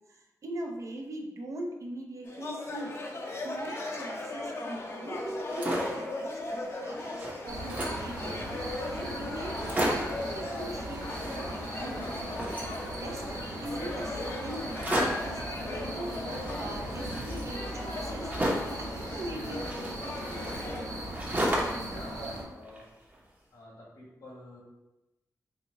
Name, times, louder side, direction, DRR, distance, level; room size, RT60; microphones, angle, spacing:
voice 1, 0.1-3.0 3.3-12.2 12.9-18.3 18.8-20.6 22.2-22.3, right 1 dB, 55° right, 2 dB, 0.6 m, -41 dB
sound 1, 2.2-20.8, left 2 dB, 45° left, 0.6 m, -38 dB
sound 2, 5.3-6.1 6.5-6.6 6.9-8.1 8.7-8.8 9.1-9.2 9.5-10.2 11.0-11.7 12.0-13.3 14.7-15.4 16.3-18.8 19.6-21.9 22.2-23.2, right 1 dB, 25° right, 0.8 m, -34 dB
sound 3, 7.5-22.4, right 1 dB, 85° right, 1.0 m, -38 dB
voice 2, 21.8-22.9 23.5-24.6, left 1 dB, 80° left, -4 dB, 1.4 m, -48 dB
4.3 x 2.2 x 4.0 m, 0.99 s
wide cardioid pair, 135°, 6 cm